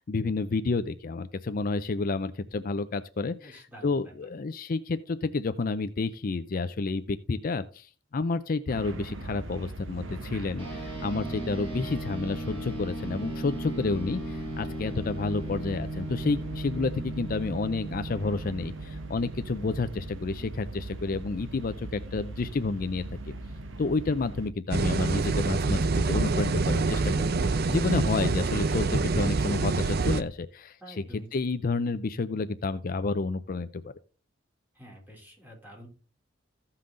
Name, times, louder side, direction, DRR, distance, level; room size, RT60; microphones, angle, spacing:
voice 1, 0.0-23.3 23.8-33.9, left 3 dB, 45° left, 11 dB, 0.5 m, -30 dB
voice 2, 3.3-4.1 30.8-31.3 34.7-35.9, equal, 10° right, -1 dB, 3.3 m, -48 dB
sound 1, 8.7-24.5, right 2 dB, 80° right, 1.1 m, -41 dB
sound 2, 10.6-20.3, right 2 dB, 30° right, 5.7 m, -37 dB
sound 3, 24.7-30.2, right 3 dB, 55° right, 0.6 m, -26 dB
15.0 x 5.7 x 3.8 m, 0.37 s
head